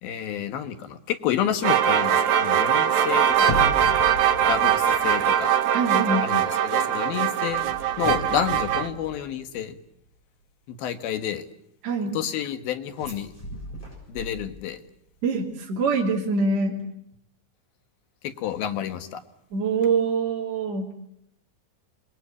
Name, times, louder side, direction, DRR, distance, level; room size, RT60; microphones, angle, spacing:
voice 1, 0.0-3.5 4.4-5.5 6.2-9.8 10.7-11.5 12.1-13.3 14.1-14.8 18.4-19.2, left 9 dB, 70° left, 8 dB, 3.3 m, -29 dB
sound 1, 1.6-8.9, right 9 dB, 60° right, 2.3 m, -22 dB
sound 2, 3.3-5.6 5.9-6.2 7.5-9.7 13.0-14.9 15.1-15.2, left 1 dB, 10° left, 7.2 m, -36 dB
voice 2, 5.7-6.3 11.8-12.2 15.2-16.8 19.5-20.9, right 4 dB, 45° right, -2 dB, 3.7 m, -24 dB
27.0 x 20.5 x 8.4 m, 0.76 s
omnidirectional pair, 4.5 m